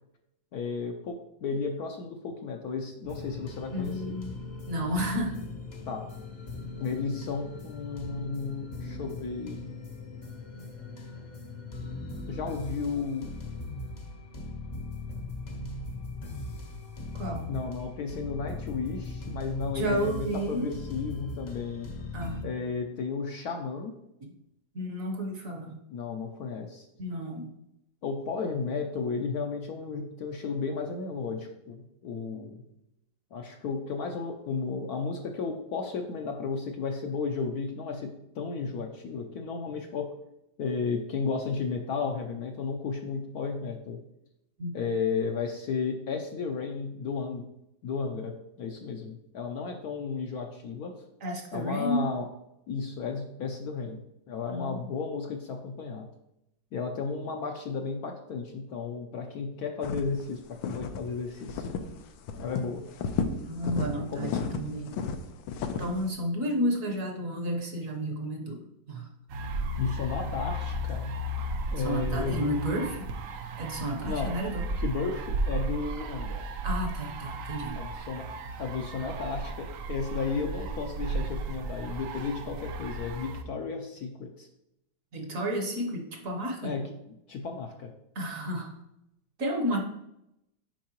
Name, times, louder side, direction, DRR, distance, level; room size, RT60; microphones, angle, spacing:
voice 1, 0.5-4.2 5.9-6.1 6.8-9.6 12.3-13.3 17.5-21.9 22.4-23.9 25.9-26.9 28.0-32.6 33.3-40.2 40.6-44.0 44.7-47.4 47.8-51.0 51.5-52.3 52.7-54.0 54.3-56.1 56.7-61.7 62.3-62.9 64.0-64.5 69.8-71.1 71.7-72.5 74.1-74.3 74.7-76.5 77.7-78.3 78.6-84.5 86.6-86.9 87.3-87.9, left 5 dB, 70° left, 3 dB, 0.9 m, -33 dB
sound 1, 3.0-22.4, left 2 dB, 50° left, 0.5 m, -39 dB
voice 2, 3.7-4.3 4.7-5.4 17.1-17.5 19.7-20.7 22.1-22.5 24.2-24.3 24.7-25.8 27.0-27.5 44.6-44.7 51.2-52.1 54.5-54.9 63.5-65.0 65.8-68.6 68.9-69.1 71.8-73.1 73.6-74.6 76.6-77.8 85.1-86.7 88.1-88.7 89.4-89.8, equal, 55° right, 2 dB, 1.1 m, -31 dB
sound 2, 59.8-60.2 60.6-61.0 61.5-62.0 62.2-62.6 63.0-63.9 64.2-66.0, left 6 dB, 90° left, 1.4 m, -32 dB
sound 3, 69.3-83.4, right 2 dB, 75° right, 0.7 m, -34 dB
7.4 x 5.4 x 2.9 m, 0.84 s
omnidirectional pair, 2.1 m